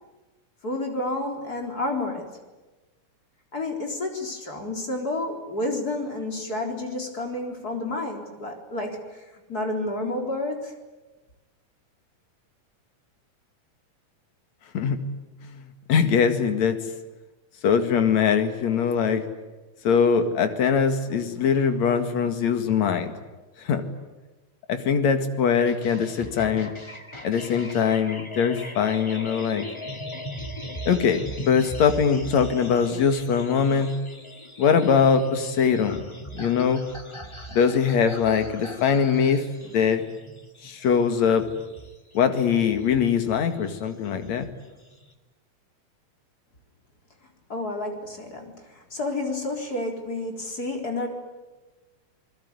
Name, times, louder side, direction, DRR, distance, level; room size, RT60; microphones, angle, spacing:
voice 1, 0.6-2.3 3.5-10.7 47.5-51.1, left 2 dB, 30° left, 3 dB, 4.2 m, -30 dB
voice 2, 15.9-16.8 17.6-19.2 19.8-23.1 23.6-23.8 24.7-26.7 27.2-29.6 30.9-33.9 34.6-36.1 36.3-36.8 37.5-39.4 39.7-40.0 40.6-41.5 42.1-44.5, left 6 dB, 65° left, 8 dB, 3.2 m, -22 dB
sound 1, 25.6-45.1, equal, 10° left, 1.9 m, -40 dB
28.5 x 20.5 x 9.7 m, 1.2 s
omnidirectional pair, 3.5 m